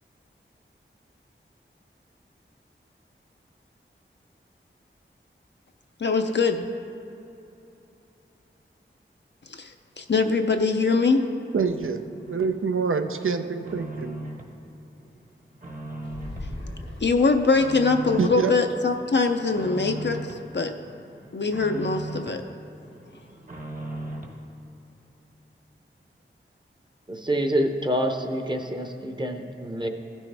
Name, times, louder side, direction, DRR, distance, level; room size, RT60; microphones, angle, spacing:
voice 1, 6.0-6.6 9.6-9.7 10.0-11.2 17.0-20.7 21.3-22.4, left 4 dB, 60° left, 0.5 m, -22 dB
voice 2, 11.5-12.0 12.3-14.2 18.2-18.6, right 5 dB, 80° right, 0.5 m, -26 dB
sound 1, 11.7-12.6 13.0-14.6 14.9-16.5 16.9-18.5 18.9-20.5 20.8-22.4 22.8-24.4, right 1 dB, 40° right, 1.1 m, -38 dB
sound 2, 16.0-17.6, left 1 dB, 80° left, 1.5 m, -37 dB
voice 3, 27.1-29.9, equal, 20° right, 0.7 m, -27 dB
15.0 x 6.2 x 3.4 m
wide cardioid pair, 50°, 21 cm